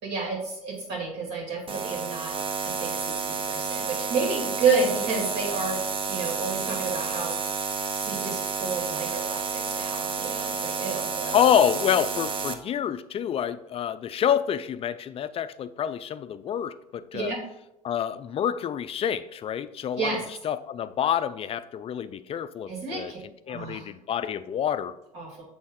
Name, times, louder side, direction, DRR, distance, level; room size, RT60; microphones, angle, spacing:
voice 1, 0.0-2.3 2.6-5.8 6.1-7.4 7.9-11.4 17.1-17.4 20.0-20.2 22.7-23.2 23.5-23.9 25.1-25.4, right 4 dB, 60° right, -1 dB, 2.5 m, -30 dB
sound 1, 1.7-12.5, right 5 dB, 25° right, 0.6 m, -30 dB
voice 2, 11.3-17.3 17.8-20.2 20.4-23.1 23.5-24.9, left 9 dB, 30° left, 14 dB, 0.4 m, -27 dB
7.1 x 4.2 x 3.7 m, 0.87 s
hypercardioid pair, 70°, 19 cm